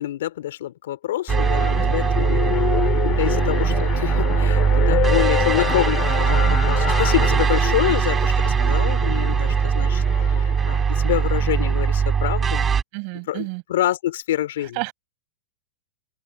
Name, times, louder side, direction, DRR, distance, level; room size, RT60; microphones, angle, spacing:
voice 1, 0.0-2.7 3.0-12.7 13.3-14.8, left 13 dB, 75° left, 3.0 m, -27 dB
sound 1, 1.3-11.7, left 24 dB, 45° left, 3.1 m, -28 dB
sound 2, 1.3-12.8, right 6 dB, 20° right, 2.7 m, -20 dB
voice 2, 12.9-13.6 14.8-14.9, right 40 dB or more, 50° right, 6.9 m, -30 dB
open air
supercardioid pair, 140°, 0 cm